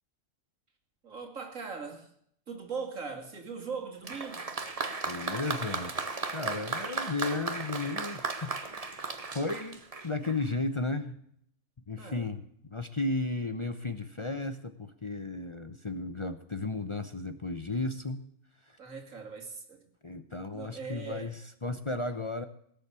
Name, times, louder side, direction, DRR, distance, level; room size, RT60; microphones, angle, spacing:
voice 1, 1.0-2.1 2.5-4.5 12.0-12.3 18.8-19.9 20.5-21.3, right 5 dB, 90° right, 3 dB, 2.8 m, -40 dB
Applause, 4.0-10.5, right 3 dB, 30° right, 1.2 m, -36 dB
voice 2, 5.1-11.2 11.9-18.2 18.7-18.8 20.0-22.4, left 2 dB, 25° left, 9 dB, 0.8 m, -34 dB
18.0 x 7.2 x 8.3 m, 0.68 s
omnidirectional pair, 1.3 m